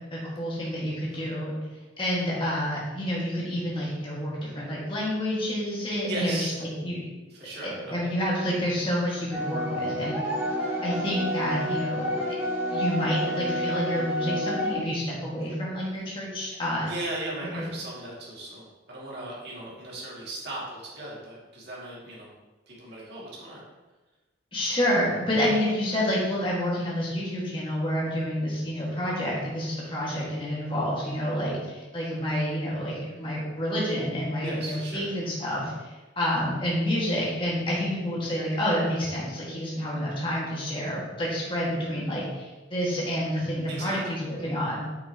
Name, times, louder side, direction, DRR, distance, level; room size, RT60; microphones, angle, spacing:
voice 1, 0.1-1.5 2.0-7.0 7.6-10.2 10.8-12.1 12.7-16.9 17.6-17.7 24.5-44.8, equal, 25° left, -5 dB, 1.9 m, -28 dB
voice 2, 6.1-6.5 7.3-7.9 15.4-15.5 16.9-22.3 22.7-23.6 34.4-35.1 43.7-44.2, right 2 dB, 55° right, -6 dB, 2.5 m, -37 dB
sound 1, 9.3-14.7, equal, 15° right, 2.6 m, -29 dB
8.7 x 6.0 x 3.0 m, 1.2 s
head